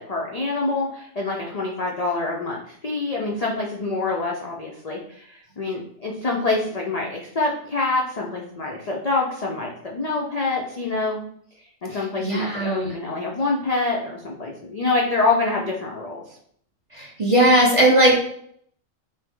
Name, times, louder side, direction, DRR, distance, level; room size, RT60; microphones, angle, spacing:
voice 1, 0.0-11.2 11.6-16.4, left 3 dB, 55° left, -2 dB, 0.4 m, -26 dB
voice 2, 12.2-12.9 17.0-18.2, right 1 dB, 30° right, -3 dB, 0.7 m, -18 dB
5.4 x 2.0 x 3.6 m, 0.65 s
omnidirectional pair, 1.4 m